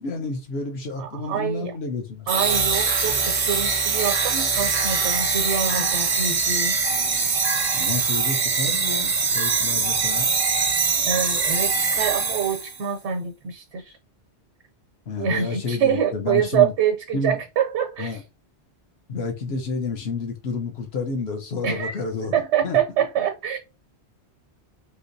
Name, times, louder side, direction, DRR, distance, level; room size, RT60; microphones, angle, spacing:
voice 1, 0.0-2.3 7.7-10.3 15.1-16.7 17.1-17.4 18.0-18.2 19.1-22.3 22.6-22.8, left 4 dB, 65° left, 1.1 m, -30 dB
voice 2, 1.0-1.7 2.3-6.8 11.1-14.0 15.2-18.2 21.6-21.9 22.3-23.6, right 8 dB, 85° right, 0.9 m, -25 dB
sound 1, 2.3-12.8, right 5 dB, 50° right, 0.4 m, -23 dB
3.1 x 2.8 x 2.6 m
omnidirectional pair, 1.1 m